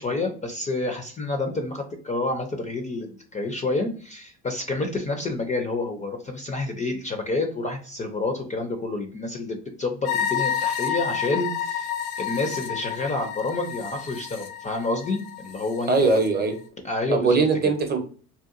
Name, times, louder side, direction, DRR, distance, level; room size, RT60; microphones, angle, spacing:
voice 1, 0.0-11.9 12.2-16.2 16.8-17.4, left 2 dB, 20° left, 4 dB, 0.4 m, -29 dB
sound 1, 10.0-16.3, left 9 dB, 75° left, 0.6 m, -30 dB
voice 2, 15.9-16.5 17.1-18.0, right 4 dB, 30° right, 5 dB, 0.6 m, -21 dB
2.8 x 2.2 x 2.4 m, 0.41 s
supercardioid pair, 95°, 34 cm